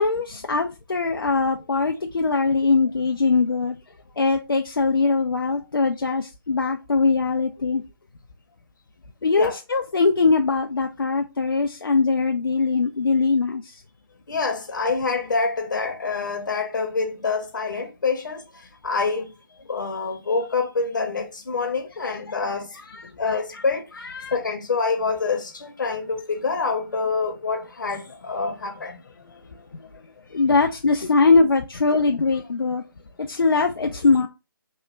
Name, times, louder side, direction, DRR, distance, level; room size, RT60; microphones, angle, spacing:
voice 1, 0.0-3.7 4.2-7.8 9.2-13.7 22.0-22.2 22.9-23.4 24.1-24.3 30.3-32.8 33.3-34.3, left 4 dB, 80° left, 0.4 m, -21 dB
voice 2, 14.3-19.3 19.7-22.8 23.2-23.9 24.3-29.1 30.3-30.4, left 4 dB, 60° left, 0.8 m, -26 dB
3.1 x 2.3 x 3.0 m
figure-of-eight pair, 145°, 12 cm